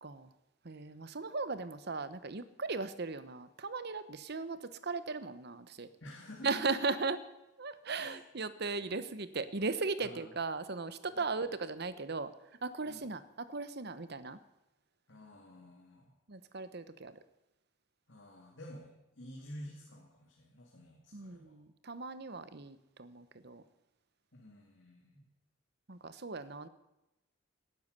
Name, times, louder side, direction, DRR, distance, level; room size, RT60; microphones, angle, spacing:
voice 1, 0.6-5.9 6.4-7.2 7.6-12.3 12.6-14.4 16.3-17.2 21.1-23.6 25.9-26.7, right 4 dB, 55° right, 13 dB, 1.0 m, -37 dB
voice 2, 6.0-6.6 8.0-8.2 10.0-10.3 11.1-11.3 12.9-13.1 15.1-16.1 18.1-21.6 24.3-25.3, left 1 dB, 60° left, -2 dB, 2.6 m, -51 dB
18.0 x 10.5 x 6.8 m, 0.96 s
head